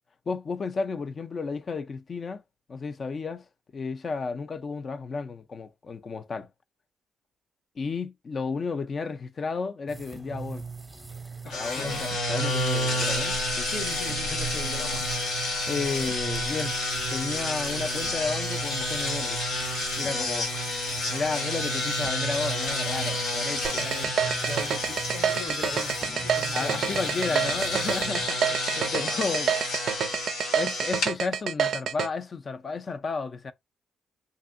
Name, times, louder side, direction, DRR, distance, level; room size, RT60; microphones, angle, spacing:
voice 1, 0.3-2.4 2.7-3.4 3.7-6.5 7.8-10.6 11.5-13.7 15.7-16.8 17.1-19.4 20.0-20.5 21.1-23.7 26.5-28.4 28.8-29.7 30.5-33.5, left 4 dB, 50° left, 0.4 m, -32 dB
sound 1, 9.9-28.3, right 5 dB, 15° right, 0.6 m, -41 dB
voice 2, 11.4-12.1 13.7-15.1 20.0-20.7 23.7-27.6 28.3-29.2, left 3 dB, 70° left, 0.7 m, -41 dB
sound 2, 11.5-31.1, left 1 dB, 85° left, 1.1 m, -30 dB
sound 3, 23.6-32.1, right 8 dB, 70° right, 0.4 m, -27 dB
2.6 x 2.6 x 2.5 m
supercardioid pair, 60°, 0 cm